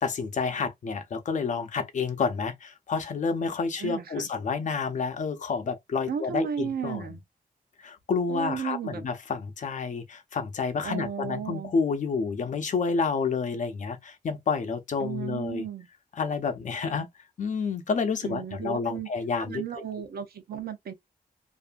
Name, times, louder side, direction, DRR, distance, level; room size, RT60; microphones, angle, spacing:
voice 1, 0.0-7.1 7.8-15.6 16.2-17.1 17.4-19.6, left 5 dB, 55° left, 0.6 m, -29 dB
voice 2, 3.8-4.3 6.1-7.2 8.3-9.1 10.8-11.7 15.0-15.9 18.2-19.1 19.4-20.9, right 8 dB, 90° right, 0.6 m, -34 dB
2.5 x 2.3 x 2.5 m
wide cardioid pair, 145°, 15 cm